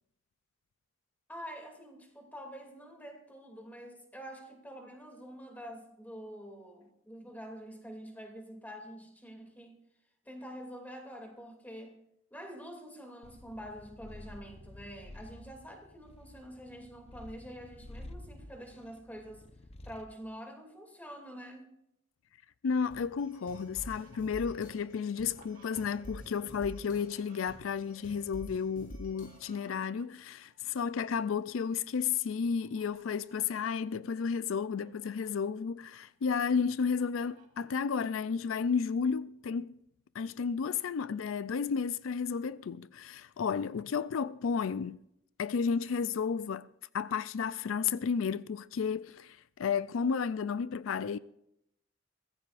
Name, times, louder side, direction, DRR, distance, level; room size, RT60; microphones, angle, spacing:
voice 1, 1.3-9.8 10.2-12.0 12.3-19.4 19.8-21.7, equal, 10° left, 2.6 m, -46 dB
Purr, 13.2-20.2, left 1 dB, 30° left, 0.8 m, -51 dB
voice 2, 22.6-39.7 40.1-45.0 45.4-46.7 46.9-51.2, left 6 dB, 90° left, 0.4 m, -32 dB
sound 1, 22.9-29.8, equal, 45° left, 6.4 m, -49 dB
Fowl, 23.2-26.3 26.5-28.1 29.0-31.1 31.6-31.7 32.4-33.5 34.1-34.2 34.5-35.3 35.8-36.5 37.0-37.7, right 4 dB, 40° right, 2.4 m, -64 dB
23.0 x 15.5 x 2.5 m
head